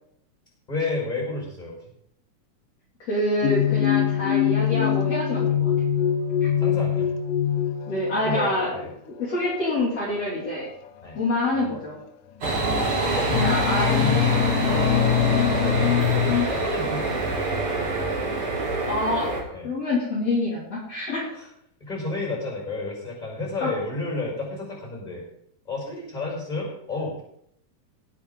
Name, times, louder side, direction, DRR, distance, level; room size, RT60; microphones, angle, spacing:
voice 1, 0.7-1.7 6.6-7.1 8.2-8.9 11.0-11.2 12.5-15.3 15.6-17.6 19.5-19.7 21.4-21.5 21.8-25.2 25.7-27.2, left 2 dB, 10° left, -1 dB, 5.5 m, -32 dB
voice 2, 3.0-5.7 6.4-6.5 7.9-8.7 9.1-10.7 11.2-12.0 13.4-13.9 18.9-19.4 19.6-21.3 23.6-23.7, left 1 dB, 50° left, -6 dB, 4.0 m, -26 dB
sound 1, 3.4-8.6 9.4-9.7 10.9-11.0 11.7-11.8 12.5-12.9 13.2-16.5, left 10 dB, 80° left, 2.4 m, -23 dB
sound 2, 12.4-19.4, right 2 dB, 45° right, 3.3 m, -25 dB
18.5 x 8.5 x 3.9 m, 0.72 s
omnidirectional pair, 3.8 m